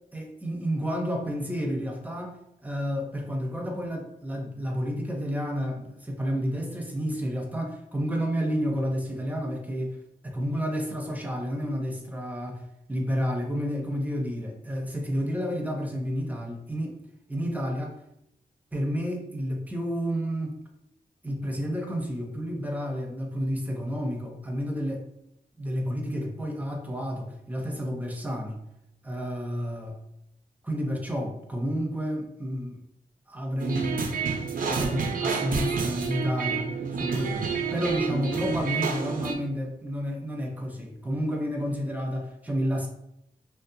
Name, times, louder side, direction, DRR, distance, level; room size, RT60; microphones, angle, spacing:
voice 1, 0.1-2.4 2.6-10.0 10.2-12.6 12.9-16.9 17.3-18.0 18.7-20.6 21.2-25.0 25.6-28.6 29.0-30.0 30.6-32.8 33.3-34.0 34.6-42.9, equal, 10° right, 1 dB, 0.6 m, -30 dB
sound 1, 33.6-39.4, right 5 dB, 65° right, 0.4 m, -29 dB
2.6 x 2.1 x 2.6 m, 0.80 s
cardioid pair, 65°, 15 cm